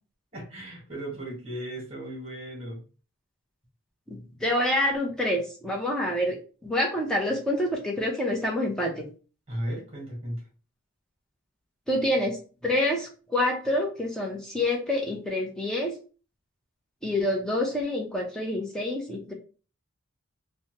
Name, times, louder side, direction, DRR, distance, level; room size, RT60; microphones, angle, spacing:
voice 1, 0.3-2.8 9.5-10.4, right 1 dB, 30° right, -2 dB, 1.3 m, -36 dB
voice 2, 4.1-6.4 6.6-9.0 11.9-12.4 12.6-15.9 17.0-19.3, left 1 dB, 5° left, -2 dB, 0.7 m, -27 dB
3.3 x 2.1 x 2.8 m, 0.36 s
head